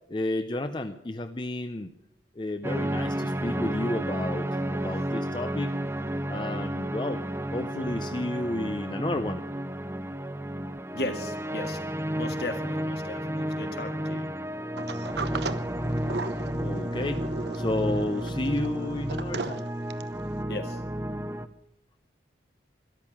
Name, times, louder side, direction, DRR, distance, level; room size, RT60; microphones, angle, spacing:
voice 1, 0.1-1.9 2.4-5.8 6.3-7.2 7.5-9.4 16.6-17.2 17.5-19.7, left 1 dB, 25° left, 8 dB, 0.6 m, -31 dB
sound 1, 2.6-21.5, right 1 dB, 15° right, 0.6 m, -32 dB
voice 2, 10.9-11.8 12.2-14.3 20.5-20.8, left 1 dB, 60° left, 6 dB, 2.0 m, -36 dB
Sliding door, 14.8-20.2, right 3 dB, 70° right, 0.9 m, -36 dB
13.5 x 12.0 x 8.5 m, 0.86 s
head